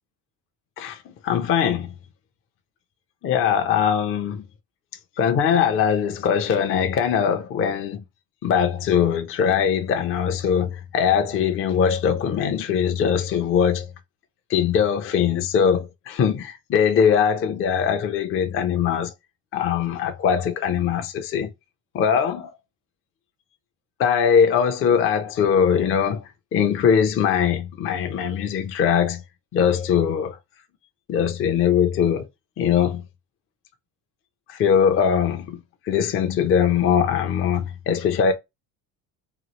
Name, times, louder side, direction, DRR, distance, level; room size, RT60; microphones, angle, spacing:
voice 1, 1.2-1.9 3.2-4.4 5.2-8.0 8.4-13.9 14.5-19.1 19.5-21.5 21.9-22.5 24.0-26.2 26.5-29.2 29.5-30.4 31.1-32.3 32.6-33.0 34.5-35.6 35.9-38.3, left 7 dB, 35° left, 0.4 m, -21 dB
3.0 x 2.3 x 2.9 m
cardioid pair, 120°, 42 cm